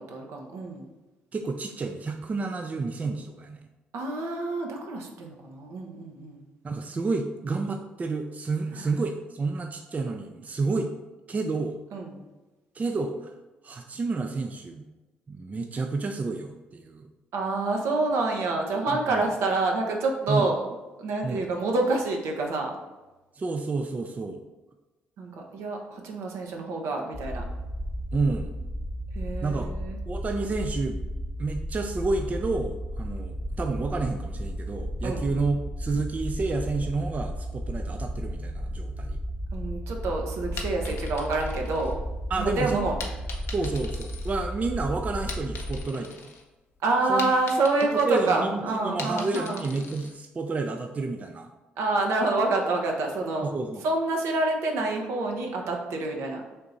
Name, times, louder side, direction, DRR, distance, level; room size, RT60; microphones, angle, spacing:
voice 1, 0.1-0.9 3.9-6.4 11.9-12.1 17.3-20.6 21.0-22.7 25.2-27.4 29.1-30.0 35.0-35.3 39.5-41.9 42.4-43.0 46.8-49.6 51.8-53.5 53.8-56.4, right 3 dB, 70° right, 1 dB, 0.7 m, -27 dB
voice 2, 1.3-3.6 6.6-10.9 11.3-11.8 12.7-13.3 13.6-14.8 15.3-17.1 19.1-19.2 20.3-20.5 21.2-21.5 23.3-24.4 28.1-28.5 29.4-29.7 30.1-31.1 31.4-39.2 42.3-42.8 43.5-46.3 47.1-47.3 48.1-51.5 53.4-53.8, right 3 dB, 30° right, 5 dB, 0.4 m, -30 dB
sound 1, 27.1-45.8, equal, 10° left, 0.8 m, -34 dB
sound 2, 40.4-42.4 43.0-44.8 45.1-46.4 46.8-50.2, left 4 dB, 60° left, 0.7 m, -41 dB
3.6 x 2.8 x 3.9 m, 1.1 s
hypercardioid pair, 50°, 5 cm